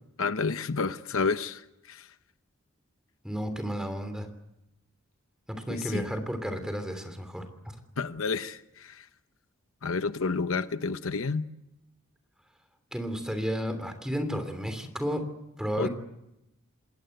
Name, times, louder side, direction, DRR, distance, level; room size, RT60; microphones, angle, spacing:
voice 1, 0.2-2.1 5.7-6.1 8.0-9.1 9.8-11.4 15.8-15.9, left 4 dB, 70° left, 11 dB, 0.9 m, -30 dB
voice 2, 3.2-4.3 5.5-7.4 12.9-15.2 15.6-15.9, equal, 5° right, 8 dB, 3.1 m, -32 dB
27.5 x 20.5 x 7.9 m, 0.89 s
head